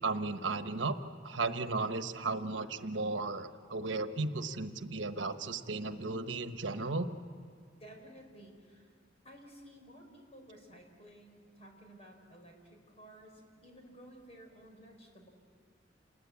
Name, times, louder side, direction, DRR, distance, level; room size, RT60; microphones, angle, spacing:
voice 1, 0.0-1.0 1.2-7.1, right 3 dB, 85° right, 9 dB, 1.2 m, -35 dB
voice 2, 7.7-8.9 9.2-15.3, right 1 dB, 35° left, 3 dB, 4.8 m, -54 dB
28.0 x 20.5 x 8.6 m, 2.2 s
head